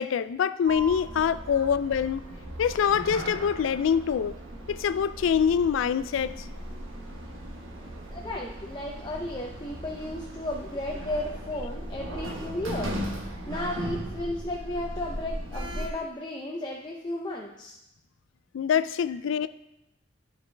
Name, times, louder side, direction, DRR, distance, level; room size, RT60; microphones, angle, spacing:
voice 1, 0.0-2.2 2.6-4.4 4.7-6.3 18.5-19.5, left 7 dB, 80° left, 0.3 m, -25 dB
Sliding door, 0.7-15.9, right 1 dB, 85° right, 1.2 m, -37 dB
voice 2, 8.1-13.0 13.5-17.7, left 1 dB, 20° left, 0.6 m, -34 dB
12.5 x 5.0 x 3.3 m
head